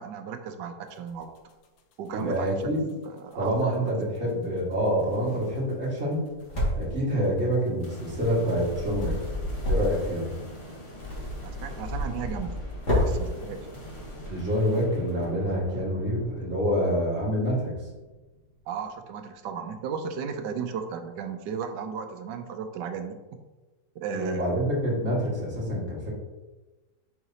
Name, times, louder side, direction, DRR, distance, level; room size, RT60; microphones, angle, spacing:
voice 1, 0.0-1.4 2.0-2.6 3.0-3.9 11.4-12.6 13.0-13.6 18.7-23.2 23.9-24.6, right 6 dB, 75° right, 7 dB, 1.2 m, -35 dB
sound 1, 1.2-3.6 3.9-4.3 4.6-4.7 4.9-5.0 5.4-5.5 5.7-5.8 6.1-14.7 15.0-15.3, left 1 dB, 65° left, 0.8 m, -38 dB
voice 2, 2.1-2.9 3.4-6.2 6.7-9.2 9.7-10.3 14.3-17.8 24.1-26.1, equal, 35° right, -5 dB, 2.0 m, -27 dB
sound 2, 4.9-15.5, left 1 dB, 40° left, 2.3 m, -33 dB
sound 3, 7.8-19.2, equal, 20° left, 1.1 m, -44 dB
6.6 x 5.1 x 2.8 m, 1.2 s
omnidirectional pair, 2.0 m